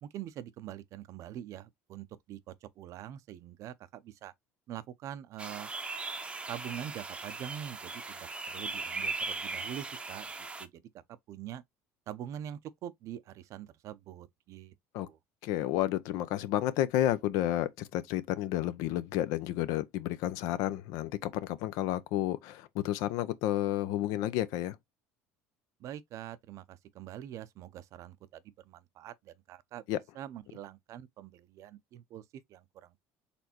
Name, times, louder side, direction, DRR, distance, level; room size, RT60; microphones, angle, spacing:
voice 1, 0.0-4.3 4.7-5.7 6.5-10.8 11.1-11.6 12.1-15.2 25.8-33.0, right 11 dB, 55° right, 0.5 m, -44 dB
sound 1, 5.4-10.7, right 3 dB, 15° right, 0.6 m, -38 dB
voice 2, 15.4-24.8 29.9-30.0, left 13 dB, 75° left, 0.5 m, -31 dB
4.3 x 3.3 x 2.8 m
supercardioid pair, 110°, 6 cm